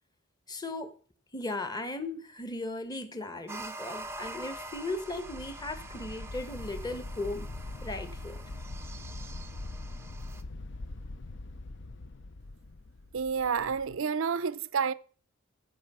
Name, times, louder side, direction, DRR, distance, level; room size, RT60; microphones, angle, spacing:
voice 1, 0.5-0.9 1.3-7.5 7.8-8.4, left 2 dB, 20° left, 1.0 m, -37 dB
sound 1, 3.5-10.4, right 2 dB, 10° right, 0.5 m, -45 dB
sound 2, 4.0-14.0, left 2 dB, 55° left, 0.6 m, -43 dB
voice 2, 13.1-14.9, right 6 dB, 65° right, 0.5 m, -29 dB
14.5 x 5.4 x 5.5 m
head